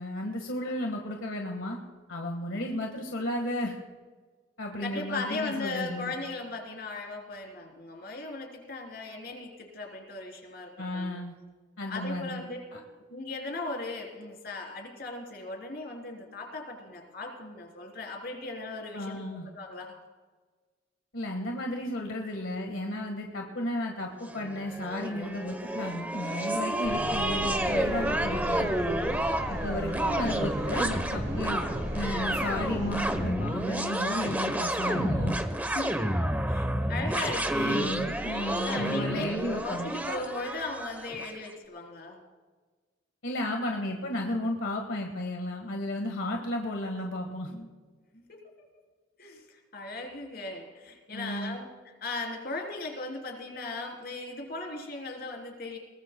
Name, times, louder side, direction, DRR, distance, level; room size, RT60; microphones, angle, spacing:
voice 1, 0.0-1.8 2.1-3.7 4.6-6.1 10.8-11.3 11.8-12.4 12.7-12.8 18.9-19.5 21.1-28.7 29.5-31.6 31.9-35.4 37.5-40.0 43.2-47.5 51.1-51.6, left 1 dB, 85° left, 2 dB, 1.6 m, -33 dB
voice 2, 4.8-11.1 11.9-12.6 13.1-19.2 19.4-19.9 35.7-37.9 38.6-39.3 39.6-42.2 47.5-47.7 48.1-48.7 49.2-51.7 52.0-55.8, left 3 dB, 50° left, 0 dB, 3.7 m, -38 dB
sound 1, 24.3-41.3, right 1 dB, 10° right, 0.9 m, -30 dB
sound 2, 26.8-33.3, equal, 55° right, 5.7 m, -37 dB
22.5 x 19.0 x 2.3 m, 1.4 s
head